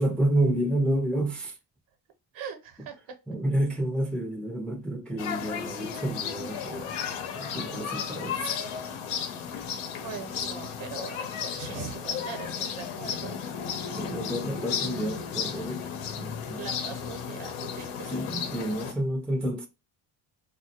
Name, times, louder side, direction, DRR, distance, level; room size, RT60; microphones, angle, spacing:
voice 1, 0.0-1.5 3.3-6.9 7.3-8.6 13.9-15.8 16.2-16.6 18.1-19.7, right 1 dB, ahead, 0.4 m, -29 dB
voice 2, 2.3-3.2 10.0-13.4 16.6-18.1, right 6 dB, 65° right, 0.9 m, -40 dB
sound 1, 5.2-18.9, left 7 dB, 85° left, 0.7 m, -34 dB
2.2 x 2.0 x 2.7 m
supercardioid pair, 70°, 49 cm